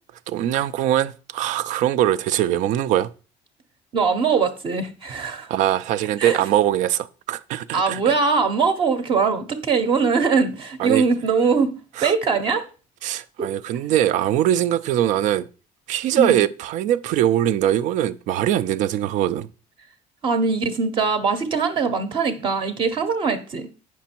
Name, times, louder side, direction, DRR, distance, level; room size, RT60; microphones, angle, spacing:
voice 1, 0.3-3.1 5.5-8.0 10.8-11.0 12.0-12.1 13.0-15.5 15.9-19.5, right 12 dB, 60° right, 0.5 m, -22 dB
voice 2, 3.9-5.5 6.2-6.4 7.7-11.7 12.0-12.6 13.4-13.5 16.2-16.4 20.2-23.7, right 5 dB, 35° right, 0.8 m, -21 dB
8.3 x 6.1 x 4.4 m
cardioid pair, 180°, 14 cm